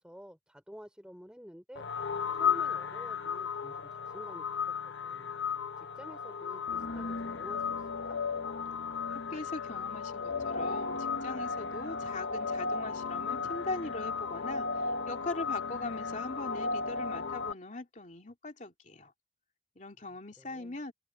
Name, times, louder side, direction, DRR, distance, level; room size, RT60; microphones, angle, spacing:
voice 1, 0.0-1.8 2.3-4.5 4.8-5.3 5.8-8.2 20.4-20.8, equal, 5° right, 3.5 m, -50 dB
sound 1, 1.8-17.5, left 5 dB, 85° left, 1.0 m, -35 dB
voice 2, 9.1-19.1 19.8-20.9, left 2 dB, 45° left, 2.9 m, -41 dB
open air
head